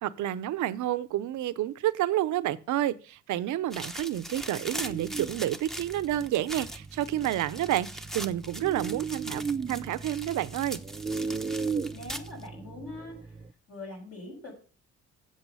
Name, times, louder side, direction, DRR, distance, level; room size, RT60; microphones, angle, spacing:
voice 1, 0.0-7.9 8.1-9.4 9.7-10.8, right 13 dB, 75° right, 0.7 m, -29 dB
sound 1, 3.7-12.5, equal, ahead, 0.9 m, -41 dB
sound 2, 4.8-13.5, right 5 dB, 15° right, 0.5 m, -37 dB
voice 2, 11.9-13.4 13.7-14.6, left 2 dB, 50° left, 6.0 m, -42 dB
8.1 x 7.7 x 5.6 m
cardioid pair, 90°, 30 cm